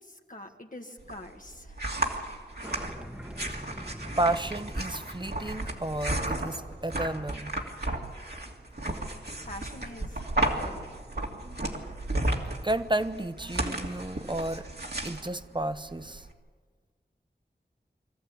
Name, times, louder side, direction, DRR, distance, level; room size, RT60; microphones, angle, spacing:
voice 1, 0.0-1.8 9.5-10.9, left 1 dB, 45° left, 3 dB, 1.7 m, -45 dB
sound 1, 1.0-16.3, right 1 dB, 65° right, 2.7 m, -34 dB
sound 2, 2.6-7.9, equal, 5° right, 1.5 m, -46 dB
voice 2, 4.2-7.6 12.6-14.7 15.0-16.3, right 1 dB, 25° right, 12 dB, 0.9 m, -32 dB
24.0 x 14.5 x 8.6 m, 1.5 s
wide cardioid pair, 40°, 18 cm